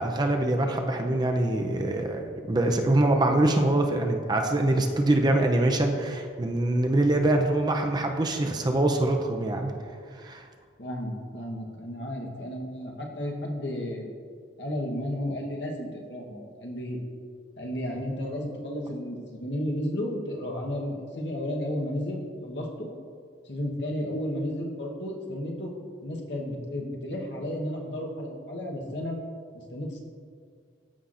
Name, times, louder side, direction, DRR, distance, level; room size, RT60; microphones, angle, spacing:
voice 1, 0.0-9.7 10.2-10.4, right 1 dB, 25° right, 3 dB, 0.5 m, -24 dB
voice 2, 10.8-14.1 14.6-17.0 17.6-22.9 23.4-25.7 26.0-29.2 29.5-30.0, left 1 dB, 65° left, 0 dB, 1.1 m, -33 dB
13.5 x 5.7 x 2.5 m, 2.1 s
head